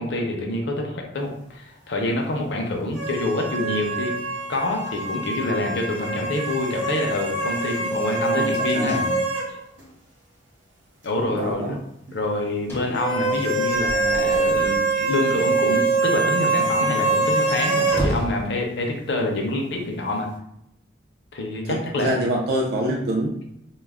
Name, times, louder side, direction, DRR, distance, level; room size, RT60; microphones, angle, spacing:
voice 1, 0.0-4.1 4.5-9.0 11.0-11.8 12.1-20.3 21.3-22.1, left 2 dB, 65° left, 1 dB, 0.5 m, -26 dB
sound 1, 2.9-9.5 9.8-9.9 12.9-18.0, right 3 dB, 80° right, 0.7 m, -24 dB
voice 2, 8.2-9.2 11.3-11.8 21.6-23.4, right 1 dB, 55° right, -2 dB, 0.4 m, -26 dB
Slam / Squeak / Wood, 12.7-15.9 16.2-16.3 16.6-16.7 17.2-18.5, equal, 10° left, 0.4 m, -33 dB
2.2 x 2.0 x 3.4 m, 0.79 s
head